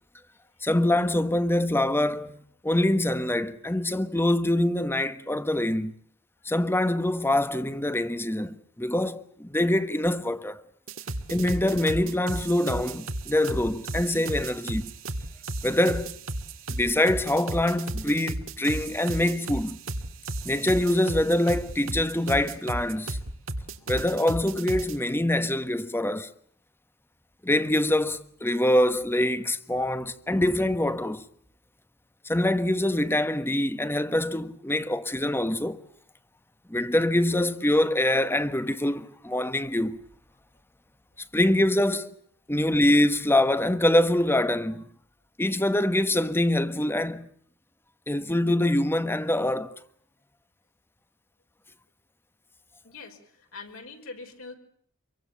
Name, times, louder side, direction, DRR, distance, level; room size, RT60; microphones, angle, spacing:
voice 1, 0.6-2.3 2.6-5.9 6.4-10.6 11.3-14.9 15.6-16.2 16.7-19.8 20.4-23.2 23.9-26.3 27.4-31.2 32.2-35.8 36.7-40.0 41.3-42.1 42.5-44.8 45.4-47.3 48.1-49.7, left 1 dB, 10° left, 1.3 m, -24 dB
sound 1, 10.9-25.0, right 2 dB, 65° right, 2.3 m, -34 dB
voice 2, 52.8-54.5, left 3 dB, 70° left, 5.5 m, -43 dB
26.5 x 23.5 x 6.9 m
head